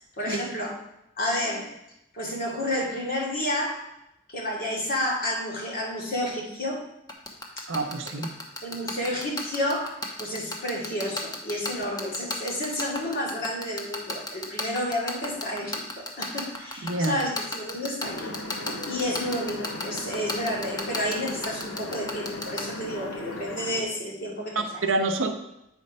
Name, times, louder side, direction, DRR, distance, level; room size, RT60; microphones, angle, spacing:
voice 1, 0.2-0.7 1.2-1.7 2.1-3.9 4.3-6.8 8.6-18.4 18.9-24.8, left 1 dB, 45° left, -2 dB, 2.1 m, -30 dB
sound 1, 7.1-22.6, left 2 dB, 20° left, 1.0 m, -31 dB
voice 2, 7.7-8.3 16.8-17.2 24.8-25.3, right 2 dB, 70° right, 5 dB, 0.8 m, -26 dB
sound 2, 18.0-23.8, left 2 dB, 75° left, 1.0 m, -37 dB
8.5 x 4.6 x 5.3 m, 0.85 s
head